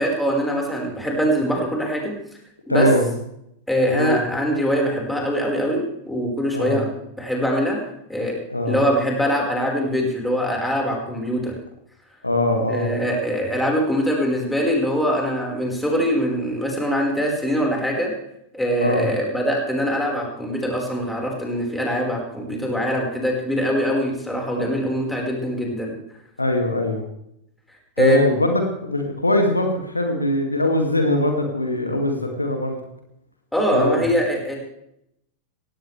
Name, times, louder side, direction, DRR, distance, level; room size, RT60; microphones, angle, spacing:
voice 1, 0.0-2.1 2.7-2.9 3.7-6.9 7.2-7.8 8.1-8.4 8.7-11.5 12.7-18.1 18.5-25.9 28.0-28.2 33.5-34.5, equal, 5° left, -1 dB, 4.9 m, -23 dB
voice 2, 2.7-3.1 3.9-4.2 6.5-6.8 8.5-8.8 12.2-12.9 18.8-19.1 22.5-22.6 24.6-24.7 26.4-27.0 28.0-32.8 33.7-34.0, left 1 dB, 85° left, 4 dB, 2.3 m, -21 dB
18.0 x 17.0 x 3.4 m, 0.77 s
figure-of-eight pair, 90°, 0 cm